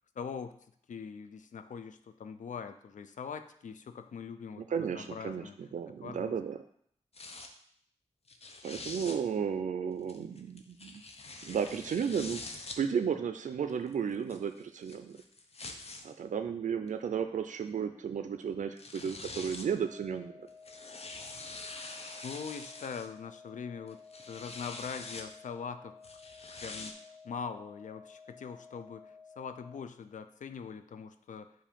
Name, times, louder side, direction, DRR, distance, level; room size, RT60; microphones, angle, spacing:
voice 1, 0.2-0.6 0.9-5.6 6.0-6.4 22.2-26.0 26.6-26.9 27.2-31.5, left 6 dB, 90° left, 9 dB, 0.4 m, -42 dB
voice 2, 4.6-6.6 8.6-11.0 11.4-12.4 12.8-15.2 16.0-20.5, right 7 dB, 90° right, 8 dB, 0.4 m, -34 dB
sound 1, 7.1-7.5 8.3-9.2 10.1-12.8 13.7-16.0 16.9-17.0 18.4-18.5 18.8-19.7 20.5-23.1 23.9-25.3 26.0-26.9, left 3 dB, 55° left, 0.7 m, -45 dB
sound 2, 19.8-29.8, left 5 dB, 25° right, 0.8 m, -54 dB
7.3 x 2.6 x 5.1 m, 0.66 s
wide cardioid pair, 80°, 13 cm